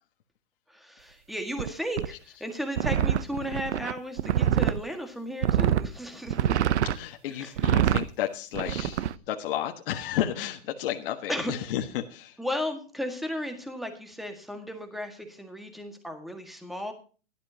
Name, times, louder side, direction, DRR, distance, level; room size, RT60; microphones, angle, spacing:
voice 1, 0.7-6.6 7.3-7.5 11.3-11.5 12.4-16.9, equal, ahead, 5 dB, 1.7 m, -35 dB
sound 1, 1.6-1.7 2.0-2.1 2.8-4.8 5.4-5.9 6.3-7.0 7.6-8.1 8.5-9.1, right 10 dB, 70° right, 0.8 m, -25 dB
voice 2, 6.9-12.4, left 11 dB, 50° left, 4 dB, 1.4 m, -32 dB
16.5 x 12.0 x 2.8 m, 0.37 s
hypercardioid pair, 155°, 36 cm